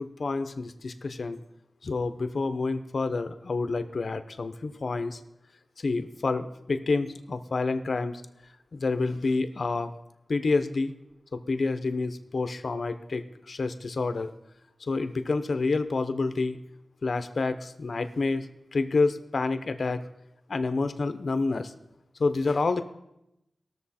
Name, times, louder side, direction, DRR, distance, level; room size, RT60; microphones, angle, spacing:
voice 1, 0.0-1.4 1.8-5.2 5.8-8.2 8.7-9.9 10.3-10.9 11.3-14.3 14.8-16.6 17.0-18.5 18.7-20.0 20.5-21.7 22.2-22.8, left 3 dB, 60° left, 10 dB, 0.7 m, -28 dB
19.5 x 6.8 x 4.2 m, 0.86 s
wide cardioid pair, 110°, 0 cm